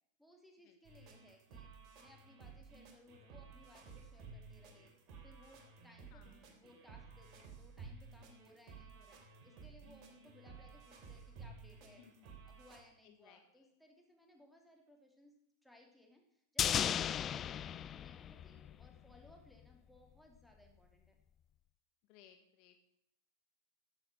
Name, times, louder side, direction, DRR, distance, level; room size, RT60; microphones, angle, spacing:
voice 1, 0.2-1.7 2.0-4.9 5.2-12.0 12.5-15.3 15.6-17.6 17.9-21.2, left 1 dB, ahead, 1 dB, 2.9 m, -64 dB
sound 1, 0.8-12.8, right 4 dB, 45° right, 3.0 m, -55 dB
voice 2, 6.1-6.4 12.0-12.5 13.0-13.7 18.8-19.2 22.0-22.9, left 10 dB, 50° left, 7 dB, 1.3 m, -65 dB
sound 2, 16.6-19.0 19.2-19.3, left 9 dB, 30° left, 0.4 m, -35 dB
13.0 x 7.8 x 6.2 m, 0.77 s
hypercardioid pair, 105°, 0 cm